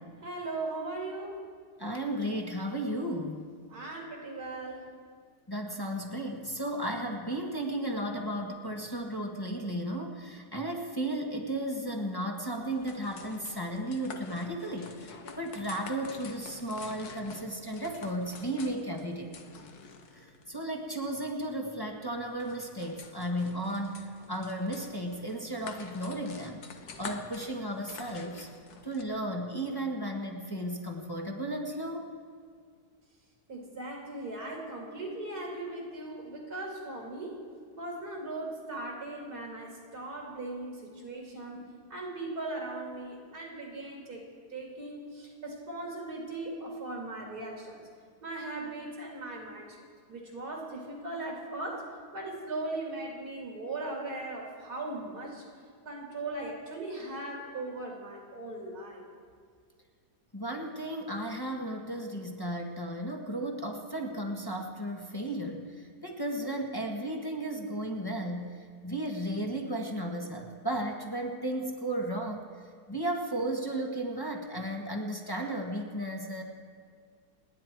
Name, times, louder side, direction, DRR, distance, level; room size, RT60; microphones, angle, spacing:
voice 1, 0.2-1.4 3.7-4.9 33.5-37.4 37.8-44.2 44.5-47.8 48.2-49.8 50.1-55.4 55.8-59.0, right 2 dB, 70° right, -1 dB, 3.2 m, -38 dB
voice 2, 1.8-3.4 5.5-19.3 20.1-26.6 27.0-28.5 28.8-32.1 60.3-68.6 68.8-72.4 72.9-76.4, right 1 dB, 15° left, 1 dB, 1.4 m, -34 dB
sound 1, 12.5-29.0, left 5 dB, 70° left, 1.7 m, -48 dB
29.5 x 10.0 x 4.6 m, 2.1 s
omnidirectional pair, 1.7 m